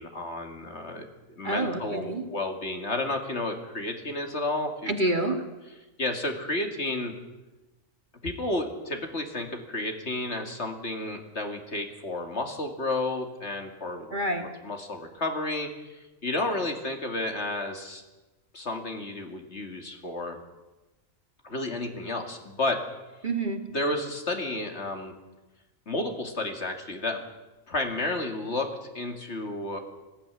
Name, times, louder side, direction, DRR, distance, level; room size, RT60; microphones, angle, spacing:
voice 1, 0.0-4.9 5.2-5.4 6.0-7.1 8.2-14.1 14.6-18.0 18.5-20.4 21.4-22.8 23.7-25.1 25.9-27.2 27.7-29.8, left 2 dB, 50° left, 5 dB, 2.6 m, -31 dB
voice 2, 1.4-2.3 4.9-5.4 14.1-14.5 23.2-23.7, right 2 dB, 35° right, 5 dB, 2.1 m, -28 dB
19.5 x 16.0 x 9.9 m, 1.1 s
omnidirectional pair, 1.4 m